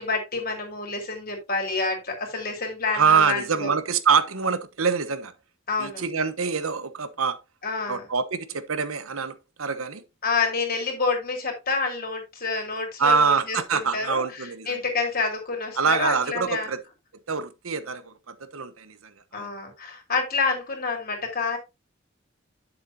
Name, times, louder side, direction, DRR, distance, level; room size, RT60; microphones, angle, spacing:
voice 1, 0.0-3.7 5.7-6.0 7.6-8.0 10.2-16.7 19.3-21.6, left 4 dB, 45° left, 3.5 m, -28 dB
voice 2, 2.9-5.3 5.8-7.4 7.9-10.0 13.0-14.8 15.8-16.8 17.3-19.5, right 5 dB, 90° right, 1.1 m, -25 dB
9.5 x 7.5 x 2.8 m
head